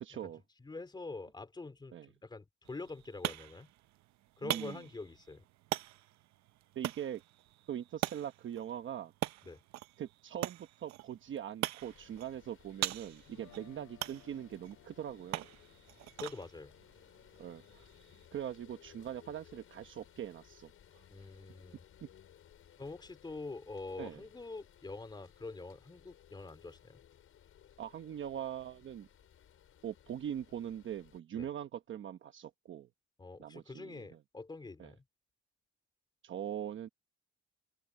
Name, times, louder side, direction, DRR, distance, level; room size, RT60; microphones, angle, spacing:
voice 1, 0.0-0.4 1.9-2.1 4.4-4.9 6.7-7.2 7.7-9.1 10.0-15.5 17.4-17.9 18.3-21.0 22.0-22.1 24.0-24.2 27.8-29.1 29.8-32.9 33.4-34.2 34.8-34.9 36.2-36.9, right 10 dB, 40° right, 1.0 m, -42 dB
voice 2, 0.6-1.9 2.2-3.7 4.4-5.4 9.4-9.6 16.2-16.7 21.1-21.8 22.8-27.0 31.4-31.5 33.2-35.0, left 3 dB, 15° left, 3.1 m, -45 dB
sound 1, 2.6-18.3, right 15 dB, 65° right, 0.7 m, -43 dB
sound 2, 11.8-31.2, left 10 dB, 45° left, 5.4 m, -61 dB
Guitar, 13.3-19.3, left 15 dB, 85° left, 7.4 m, -64 dB
open air
cardioid pair, 170°, 30 cm